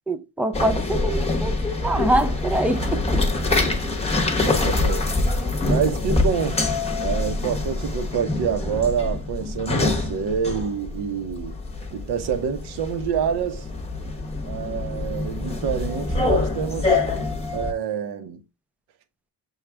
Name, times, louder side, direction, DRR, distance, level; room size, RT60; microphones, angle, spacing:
voice 1, 0.1-3.0, right 1 dB, 5° right, 0.4 m, -24 dB
sound 1, 0.5-17.7, left 2 dB, 15° left, 0.9 m, -25 dB
voice 2, 4.4-5.1 5.6-6.7 7.0-11.6 11.9-13.6 14.5-17.0 17.5-18.4, right 7 dB, 65° right, 0.9 m, -27 dB
6.4 x 2.4 x 3.3 m
cardioid pair, 110°, 42 cm